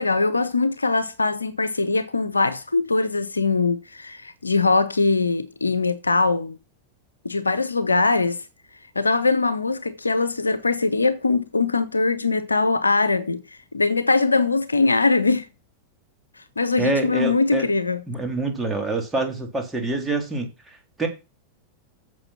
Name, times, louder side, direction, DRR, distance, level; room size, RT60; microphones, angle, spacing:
voice 1, 0.0-6.6 7.2-8.4 8.9-13.4 13.7-15.5 16.6-18.0, left 3 dB, 80° left, 0.9 m, -21 dB
voice 2, 16.8-17.7 18.1-21.1, right 2 dB, 10° right, 3.4 m, -26 dB
8.8 x 7.1 x 5.8 m
figure-of-eight pair, 90°, 0 cm